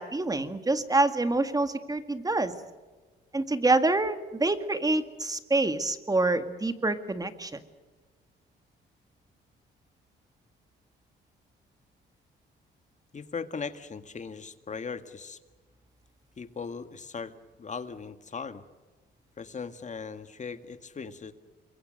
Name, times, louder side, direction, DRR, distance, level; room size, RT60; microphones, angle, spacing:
voice 1, 0.0-2.5 3.3-7.5, right 2 dB, 20° right, 9 dB, 2.0 m, -26 dB
voice 2, 13.1-15.4 16.4-18.6 19.4-21.3, left 5 dB, 40° left, 9 dB, 2.0 m, -38 dB
28.0 x 22.5 x 6.7 m, 1.3 s
cardioid pair, 90°, 20 cm